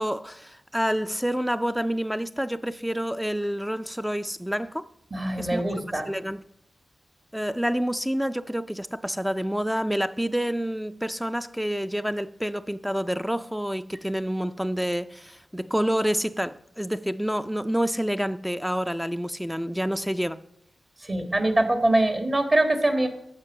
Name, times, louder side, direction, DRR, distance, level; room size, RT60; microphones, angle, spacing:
voice 1, 0.0-4.8 5.4-6.4 7.3-20.4, equal, 5° right, 0.3 m, -28 dB
voice 2, 5.1-6.0 21.0-23.1, right 1 dB, 35° right, 1.6 m, -23 dB
14.0 x 5.4 x 6.0 m
wide cardioid pair, 85°, 0 cm